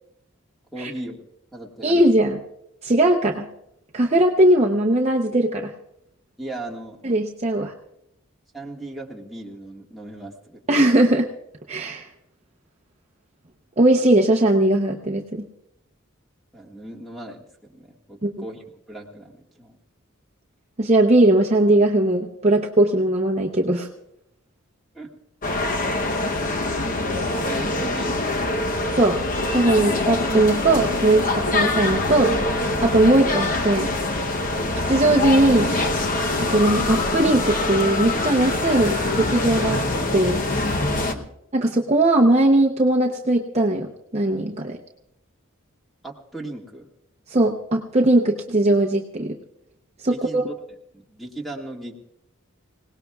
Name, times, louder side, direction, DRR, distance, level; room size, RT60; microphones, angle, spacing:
voice 1, 0.7-1.3 1.5-2.1 6.4-7.0 8.5-10.8 16.5-19.8 24.9-25.1 27.5-28.4 41.0-41.3 46.0-46.9 50.1-50.6 51.1-51.9, right 1 dB, ahead, -3 dB, 1.7 m, -37 dB
voice 2, 1.8-2.4 2.8-3.5 3.9-5.7 7.0-7.7 10.7-11.3 11.7-12.1 13.8-15.5 18.2-18.3 20.8-23.9 28.9-29.2 29.5-32.3 32.8-33.9 34.9-35.7 36.4-39.8 40.1-40.4 41.5-44.8 47.3-49.4 50.0-50.4, right 1 dB, 30° right, 0 dB, 0.7 m, -19 dB
sound 1, 25.4-41.1, left 2 dB, 40° left, 0.9 m, -24 dB
26.0 x 18.0 x 2.4 m, 0.80 s
head